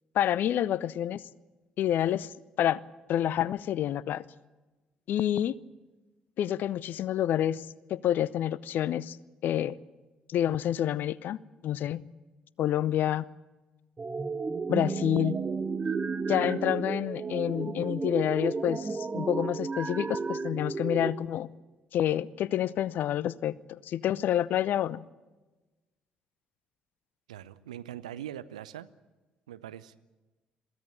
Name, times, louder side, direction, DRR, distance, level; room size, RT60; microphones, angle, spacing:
voice 1, 0.1-1.2 1.8-2.3 2.6-2.8 3.1-4.2 5.1-5.5 6.4-7.6 7.9-9.2 9.4-9.8 10.3-11.4 11.6-12.0 12.6-13.3 14.7-15.4 16.3-21.5 21.9-25.0, left 11 dB, 55° left, 22 dB, 0.6 m, -28 dB
sound 1, 14.0-21.1, right 4 dB, 30° right, 1.1 m, -32 dB
voice 2, 27.3-28.9 29.5-30.0, right 11 dB, 80° right, 14 dB, 0.7 m, -42 dB
22.5 x 16.0 x 8.6 m, 1.2 s
figure-of-eight pair, 45°, 4 cm